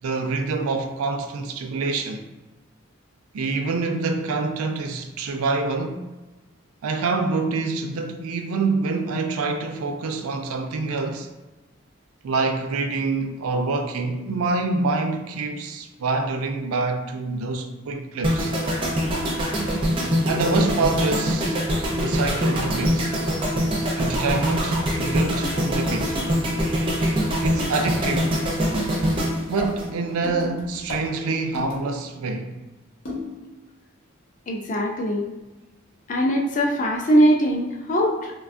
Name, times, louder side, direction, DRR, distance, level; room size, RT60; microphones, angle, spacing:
voice 1, 0.0-2.2 3.3-6.0 6.8-11.3 12.2-18.5 20.3-21.6 21.9-23.2 24.0-26.2 27.4-28.4 29.5-32.6, right 3 dB, 90° right, 0.4 m, -26 dB
sound 1, 18.2-30.4 30.7-31.0, equal, 25° right, 0.4 m, -24 dB
sound 2, 29.4-32.0 33.0-33.5, left 2 dB, 90° left, 1.0 m, -34 dB
voice 2, 34.5-35.3 36.1-38.3, equal, 35° left, 0.4 m, -21 dB
3.3 x 2.2 x 2.4 m
head